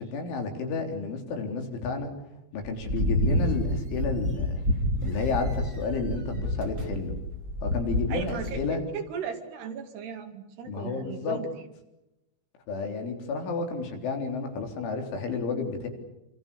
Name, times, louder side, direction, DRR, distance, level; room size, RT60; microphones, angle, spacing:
voice 1, 0.0-2.1 2.5-4.6 5.0-7.2 7.6-8.8 10.7-11.4 12.7-15.9, left 4 dB, 85° left, 4 dB, 6.3 m, -31 dB
sound 1, 2.6-8.6, left 1 dB, 25° right, 2.8 m, -28 dB
voice 2, 8.1-8.6 8.9-11.7, right 6 dB, 65° right, 5 dB, 4.2 m, -36 dB
28.0 x 26.5 x 7.0 m, 0.93 s
omnidirectional pair, 5.4 m